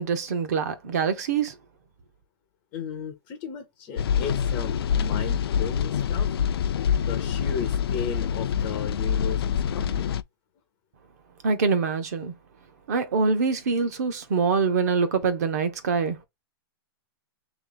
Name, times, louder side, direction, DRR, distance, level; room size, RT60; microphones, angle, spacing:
voice 1, 0.0-1.5 11.4-12.3 12.9-16.2, right 5 dB, 40° right, 0.8 m, -24 dB
voice 2, 2.7-6.3 7.0-10.1, left 6 dB, 15° left, 0.5 m, -35 dB
sound 1, 4.0-10.2, left 8 dB, 70° left, 0.4 m, -26 dB
3.3 x 3.0 x 3.8 m
hypercardioid pair, 180°, 13 cm